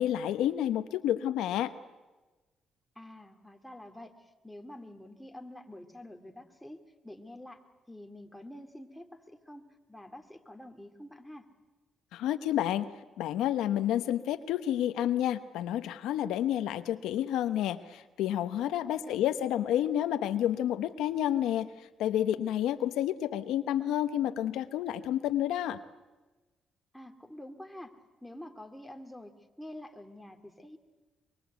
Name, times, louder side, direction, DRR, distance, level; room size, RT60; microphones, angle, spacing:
voice 1, 0.0-1.7 12.1-12.9 13.2-21.7 22.0-25.8, left 11 dB, 90° left, 10 dB, 1.0 m, -30 dB
voice 2, 2.9-7.6 7.9-11.5 18.9-19.2 26.9-27.9 28.2-30.8, left 1 dB, 5° left, 4 dB, 2.6 m, -47 dB
24.0 x 23.5 x 8.2 m, 1.2 s
cardioid pair, 90°, 0 cm